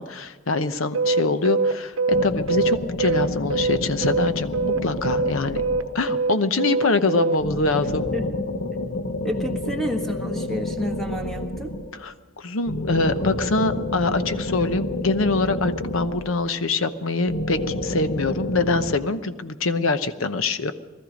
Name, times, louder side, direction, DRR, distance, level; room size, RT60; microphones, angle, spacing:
voice 1, 0.0-4.6 4.8-5.6 5.9-8.1 12.0-20.7, left 3 dB, 85° left, 11 dB, 0.9 m, -24 dB
sound 1, 0.9-4.3 4.5-7.4, right 4 dB, 85° right, 0.8 m, -23 dB
sound 2, 2.1-6.3 7.4-12.0 12.6-16.7 17.3-19.0, left 1 dB, 60° left, 1.0 m, -29 dB
voice 2, 7.8-8.4 9.2-11.7, equal, ahead, 3 dB, 1.4 m, -30 dB
19.5 x 13.5 x 5.2 m, 1.3 s
head